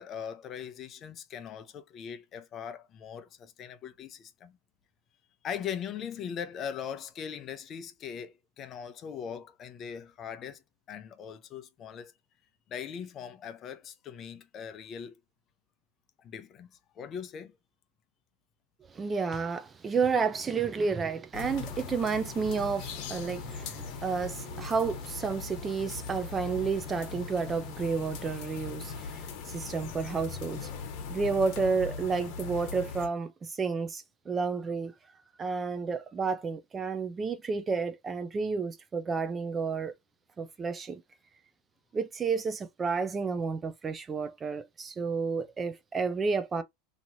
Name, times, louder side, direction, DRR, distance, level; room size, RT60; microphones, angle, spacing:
voice 1, 0.0-4.6 5.4-10.6 10.9-12.1 12.7-15.2 16.2-17.5, left 8 dB, 35° left, 0.6 m, -40 dB
voice 2, 18.9-30.7 31.1-34.9 35.4-39.9 40.4-41.0 41.9-46.6, right 5 dB, 20° right, 0.5 m, -31 dB
sound 1, 21.3-33.1, left 5 dB, 55° left, 1.1 m, -40 dB
3.0 x 2.8 x 2.6 m
supercardioid pair, 120°, 0 cm